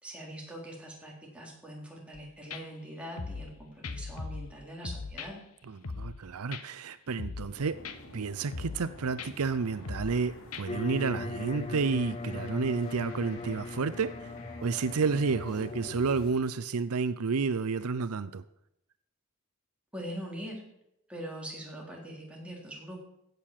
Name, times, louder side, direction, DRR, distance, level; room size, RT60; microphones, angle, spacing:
voice 1, 0.0-5.4 19.9-20.6 21.1-23.0, equal, 5° right, -3 dB, 3.7 m, -42 dB
sound 1, 2.1-2.2 2.5-2.6 3.2-3.5 3.8-4.5 4.8-5.3 5.8-6.2 6.5-6.6 7.2-7.5 7.8-8.0 8.5-8.9 9.2-9.3 9.8-10.2 10.5-10.6, left 4 dB, 85° left, 1.0 m, -39 dB
voice 2, 5.7-7.8 8.1-14.3 14.6-18.4, right 4 dB, 80° right, 14 dB, 0.6 m, -30 dB
sound 2, 7.5-16.3, left 1 dB, 70° left, 3.0 m, -49 dB
sound 3, 10.7-16.3, left 3 dB, 30° left, 0.4 m, -39 dB
16.0 x 6.7 x 7.5 m, 0.82 s
head